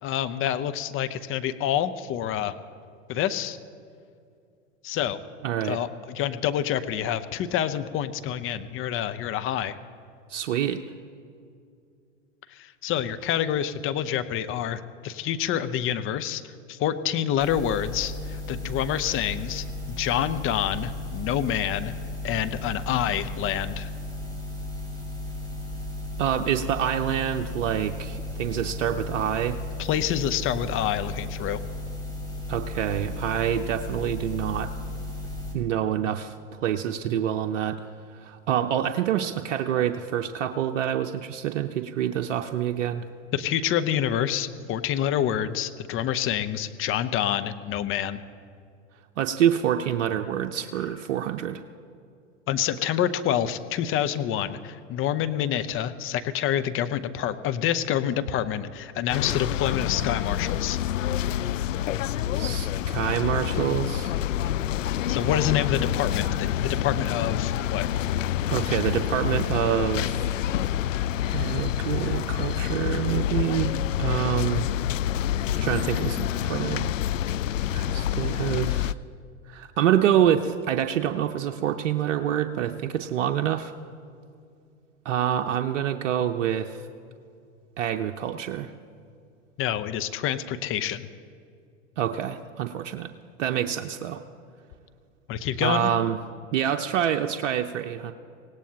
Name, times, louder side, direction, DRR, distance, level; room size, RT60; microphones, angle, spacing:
voice 1, 0.0-2.5 3.1-3.6 4.8-5.2 5.6-9.8 12.5-21.9 22.2-23.9 29.8-31.6 43.3-48.2 52.5-60.8 65.1-67.9 89.6-91.1 95.3-95.9, left 10 dB, 35° left, 11 dB, 0.8 m, -27 dB
voice 2, 5.4-5.8 10.3-10.8 26.2-29.6 32.5-34.7 35.5-36.3 36.6-37.8 38.1-43.1 49.2-51.6 62.3-64.1 68.5-70.3 71.3-74.7 75.6-76.9 77.7-78.9 79.5-83.7 85.0-86.8 87.8-88.7 92.0-93.1 93.4-94.2 95.6-96.2 96.5-98.1, right 10 dB, 65° right, 5 dB, 0.8 m, -26 dB
sound 1, 17.4-35.5, left 2 dB, 10° left, 4.2 m, -35 dB
sound 2, 59.1-78.9, left 11 dB, 80° left, 0.5 m, -27 dB
25.0 x 18.0 x 2.9 m, 2.3 s
hypercardioid pair, 95°, 38 cm